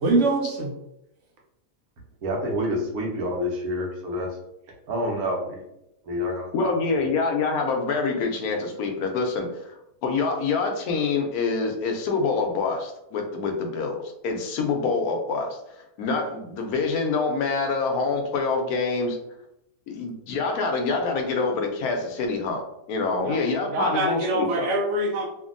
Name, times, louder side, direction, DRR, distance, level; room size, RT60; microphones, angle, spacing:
voice 1, 0.0-0.7 23.2-23.4 23.7-25.2, right 2 dB, 65° right, -1 dB, 0.8 m, -24 dB
voice 2, 2.2-4.3 4.9-5.7 6.0-6.7, equal, 80° right, 0 dB, 1.2 m, -28 dB
voice 3, 6.5-9.7 10.0-19.2 19.9-24.7, left 4 dB, 80° left, 3 dB, 1.1 m, -26 dB
2.7 x 2.6 x 2.5 m, 0.83 s
omnidirectional pair, 1.6 m